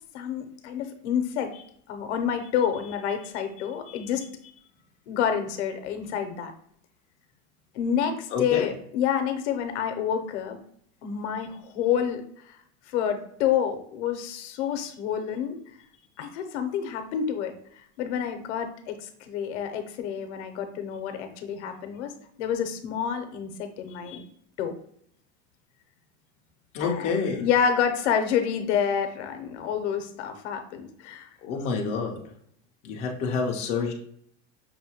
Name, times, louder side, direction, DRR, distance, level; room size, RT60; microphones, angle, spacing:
voice 1, 0.1-1.5 1.9-4.3 5.1-6.5 7.7-10.6 11.0-12.2 12.9-15.6 16.2-17.5 18.0-22.1 22.4-24.2 24.6-24.8 26.8-27.1 27.4-31.3 31.7-31.8 32.1-32.2, left 8 dB, 70° left, 8 dB, 0.7 m, -28 dB
voice 2, 3.6-4.0 8.3-8.7 24.1-24.2 26.7-27.5 31.4-32.3 32.8-33.9, left 5 dB, 20° left, 0 dB, 0.3 m, -29 dB
5.6 x 2.2 x 2.8 m, 0.67 s
supercardioid pair, 155°, 35 cm